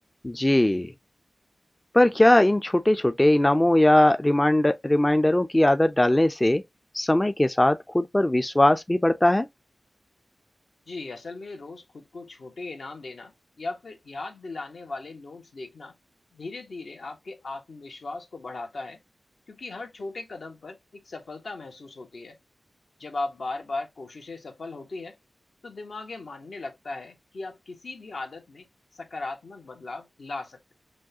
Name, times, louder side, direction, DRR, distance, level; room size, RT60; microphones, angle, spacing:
voice 1, 0.2-0.9 1.9-6.6 6.9-9.5, left 1 dB, 20° left, 0.3 m, -20 dB
voice 2, 10.9-15.9 16.3-19.0 19.5-20.8 21.0-22.4 23.0-25.2 25.6-28.7 28.9-30.7, left 3 dB, 75° left, 1.0 m, -37 dB
6.1 x 2.3 x 2.7 m
wide cardioid pair, 70°, 0 cm